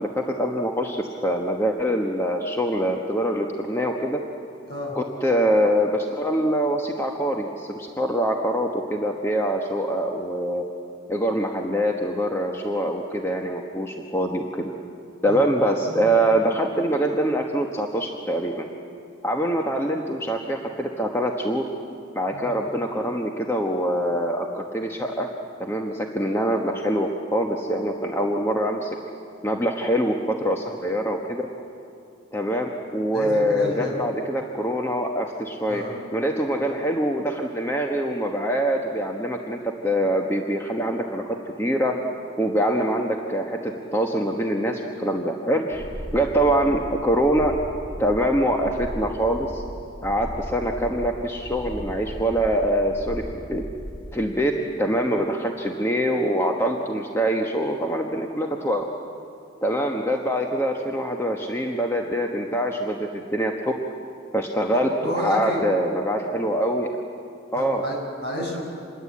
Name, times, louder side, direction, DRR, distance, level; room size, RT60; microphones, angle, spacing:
voice 1, 0.0-4.2 4.9-10.6 11.1-14.6 15.2-18.7 19.2-21.6 22.1-25.3 25.6-28.9 29.4-31.5 32.3-35.8 36.1-41.2 41.6-42.0 42.4-45.9 46.1-47.5 48.0-49.6 50.0-53.2 53.5-53.7 54.1-54.5 54.8-58.9 59.6-63.7 64.3-66.9 67.5-67.8, equal, 10° left, 1 dB, 1.2 m, -24 dB
voice 2, 33.1-34.0 35.7-36.0 64.7-65.6 67.6-68.6, left 1 dB, 50° left, -1 dB, 6.9 m, -30 dB
sound 1, 45.7-54.2, equal, 15° right, 8.0 m, -36 dB
27.0 x 21.5 x 8.5 m, 2.5 s
head